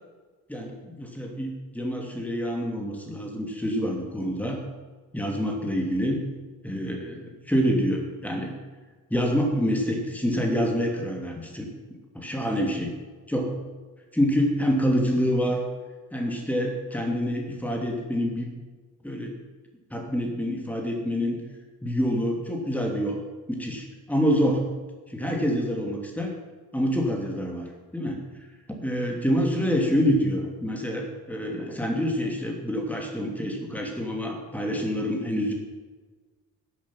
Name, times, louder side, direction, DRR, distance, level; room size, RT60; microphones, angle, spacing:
voice 1, 0.5-4.6 5.1-6.2 6.6-8.5 9.1-11.7 12.1-12.9 13.3-13.5 14.1-15.6 16.1-18.5 19.0-19.3 19.9-21.4 21.8-23.2 23.5-24.7 25.1-26.3 26.7-27.7 27.9-28.2 28.7-35.5, equal, 5° left, 1 dB, 3.0 m, -26 dB
15.0 x 8.5 x 5.9 m, 1.4 s
figure-of-eight pair, 45°, 50 cm